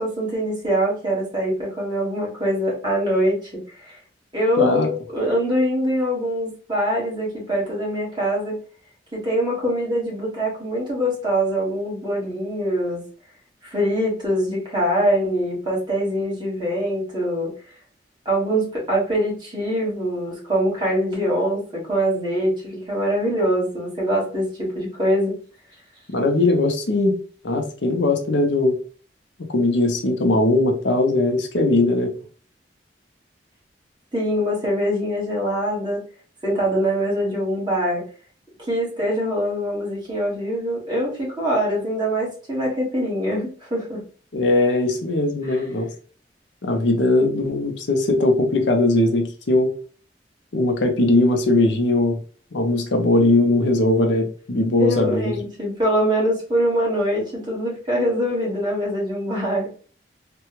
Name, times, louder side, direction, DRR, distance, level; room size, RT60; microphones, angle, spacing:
voice 1, 0.0-4.0 4.3-8.6 9.1-13.0 13.7-17.5 18.2-25.4 34.1-36.0 36.4-38.0 38.7-44.0 45.4-45.6 54.8-59.7, equal, 25° right, -4 dB, 1.5 m, -23 dB
voice 2, 4.6-4.9 26.1-27.2 27.4-28.8 29.5-32.1 44.3-45.9 46.6-49.7 50.5-52.2 52.5-55.3, left 2 dB, 85° left, 4 dB, 0.7 m, -19 dB
3.3 x 2.2 x 3.0 m, 0.41 s
head